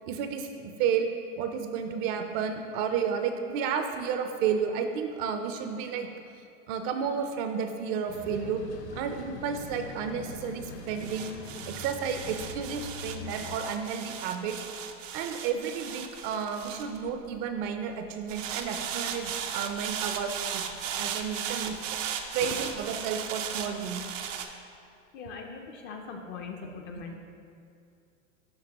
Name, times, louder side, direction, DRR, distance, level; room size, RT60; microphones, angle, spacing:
voice 1, 0.1-1.1 1.4-6.1 6.7-8.6 8.9-11.3 11.7-14.6 15.1-20.6 21.0-21.8 22.3-24.1 27.0-27.1, right 7 dB, 40° right, 6 dB, 0.5 m, -32 dB
sound 1, 8.1-13.6, left 4 dB, 60° left, 0.8 m, -43 dB
sound 2, 8.1-17.6 18.3-24.5, right 8 dB, 85° right, 0.6 m, -37 dB
voice 2, 25.1-27.2, left 5 dB, 30° left, 3 dB, 0.4 m, -41 dB
11.5 x 3.8 x 2.9 m, 2.4 s
hypercardioid pair, 120°, 38 cm